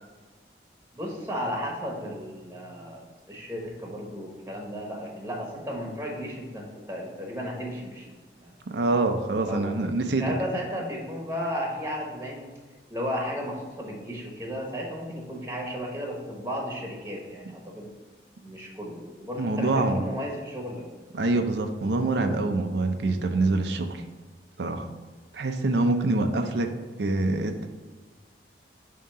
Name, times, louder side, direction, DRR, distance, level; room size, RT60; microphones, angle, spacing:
voice 1, 0.9-3.0 3.3-8.1 8.4-8.5 9.5-12.5 12.9-17.9 18.4-20.8, equal, 15° right, -1 dB, 1.0 m, -34 dB
voice 2, 8.7-10.2 10.5-10.6 19.4-20.0 21.1-24.0 24.6-24.9 25.3-26.7 27.0-27.7, right 2 dB, 70° right, 5 dB, 0.5 m, -25 dB
7.3 x 2.9 x 5.5 m, 1.4 s
head